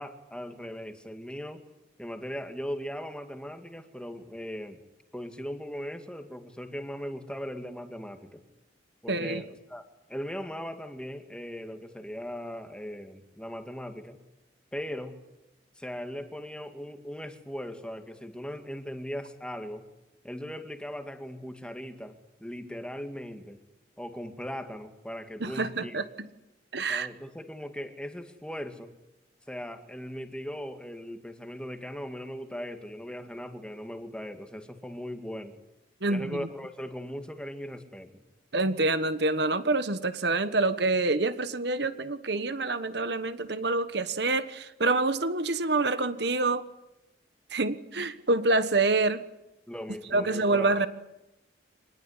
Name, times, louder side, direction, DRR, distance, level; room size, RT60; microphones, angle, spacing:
voice 1, 0.0-1.6 2.0-4.8 5.1-8.4 9.0-9.8 10.1-14.2 14.7-15.2 15.8-19.8 20.2-23.6 24.0-26.0 26.9-28.9 29.5-35.6 36.1-38.2 49.7-50.9, equal, 5° left, 7 dB, 2.2 m, -39 dB
voice 2, 9.1-9.4 25.4-26.3 26.7-27.1 36.0-36.5 38.5-46.6 47.5-49.2 50.1-50.9, right 3 dB, 60° right, 12 dB, 1.3 m, -27 dB
25.5 x 20.0 x 9.9 m, 0.95 s
head